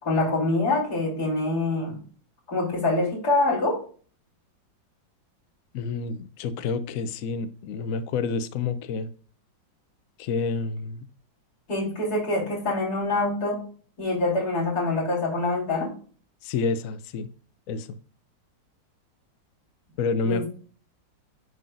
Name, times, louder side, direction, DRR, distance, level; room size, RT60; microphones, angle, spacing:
voice 1, 0.0-2.0 2.5-3.8 11.7-13.6 14.0-15.9 20.2-20.5, left 2 dB, 55° left, -6 dB, 3.7 m, -25 dB
voice 2, 5.7-9.1 10.2-11.0 16.4-17.3 17.7-18.0 20.0-20.4, left 4 dB, 75° left, 12 dB, 0.7 m, -29 dB
10.5 x 3.8 x 2.5 m, 0.42 s
omnidirectional pair, 2.0 m